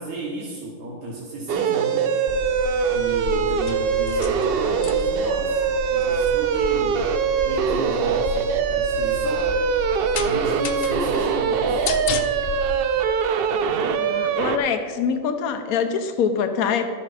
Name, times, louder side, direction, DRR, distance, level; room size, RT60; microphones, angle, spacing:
voice 1, 0.0-2.1 2.9-5.6 5.9-7.1 7.4-9.5 10.2-11.9, right 2 dB, 80° right, -4 dB, 1.8 m, -33 dB
sound 1, 1.5-14.6, right 6 dB, 60° right, 0.6 m, -22 dB
sound 2, 2.3-12.8, left 6 dB, 55° left, 0.7 m, -33 dB
voice 2, 13.9-16.9, left 6 dB, 90° left, 7 dB, 1.1 m, -24 dB
12.0 x 6.5 x 5.5 m, 2.1 s
omnidirectional pair, 1.5 m